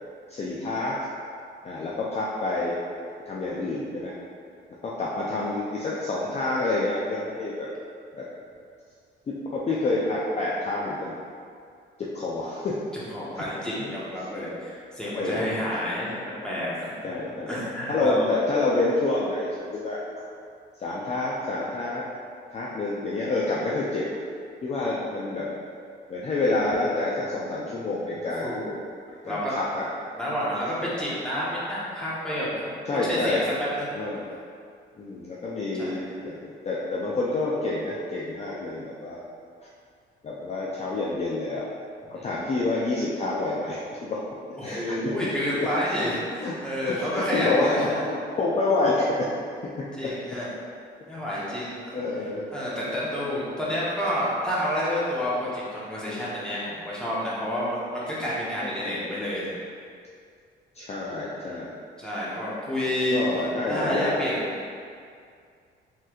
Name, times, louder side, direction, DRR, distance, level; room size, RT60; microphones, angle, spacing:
voice 1, 0.3-1.0 1.6-2.8 3.3-4.1 4.8-7.7 8.2-8.3 9.3-11.2 12.0-12.8 13.3-13.4 13.8-13.9 15.2-15.7 17.0-17.5 17.9-20.0 20.8-22.0 22.5-24.0 24.6-25.5 26.1-28.6 29.2-29.9 32.9-33.4 33.9-34.2 35.0-39.2 40.2-41.7 42.1-44.2 44.6-45.1 45.6-45.7 46.4-46.5 46.8-49.3 49.8-50.1 51.9-52.5 58.6-59.2 60.7-61.7 63.1-64.2, left 2 dB, 35° left, -6 dB, 0.4 m, -28 dB
voice 2, 13.1-16.2 16.4-16.9 17.5-18.3 27.2-27.3 28.4-28.8 29.2-29.5 30.1-32.5 32.8-34.0 35.7-36.2 42.1-42.3 44.6-48.0 49.9-50.5 51.1-51.8 52.5-59.5 61.4-61.6 62.0-63.2 63.7-64.7, equal, 5° left, -8 dB, 0.9 m, -29 dB
3.1 x 3.0 x 2.3 m, 2.3 s
cardioid pair, 90°, 20 cm